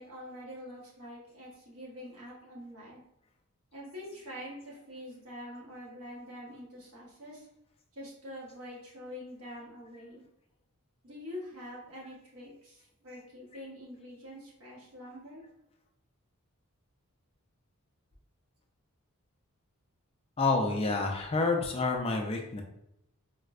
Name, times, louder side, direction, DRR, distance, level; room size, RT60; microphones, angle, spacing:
voice 1, 0.0-3.0 3.7-7.5 7.9-10.2 11.0-15.4, left 1 dB, 70° right, -5 dB, 1.1 m, -45 dB
voice 2, 20.4-22.6, left 3 dB, 25° left, 2 dB, 0.3 m, -28 dB
4.1 x 2.0 x 2.3 m, 0.81 s
head